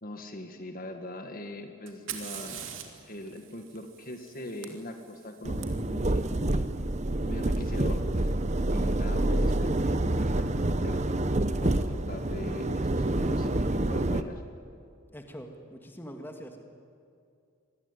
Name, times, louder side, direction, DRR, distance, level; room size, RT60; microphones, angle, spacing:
voice 1, 0.0-2.7 3.0-6.7 7.2-8.3 8.7-11.1 11.6-14.4, left 1 dB, 40° left, 6 dB, 1.7 m, -41 dB
Fire, 1.9-5.7 7.5-7.6 8.5-8.9, right 9 dB, 60° right, 3.0 m, -43 dB
sound 1, 5.4-14.2, right 1 dB, 30° right, 0.9 m, -27 dB
voice 2, 15.1-16.6, equal, 10° left, 4 dB, 2.0 m, -43 dB
26.0 x 21.0 x 9.8 m, 2.4 s
head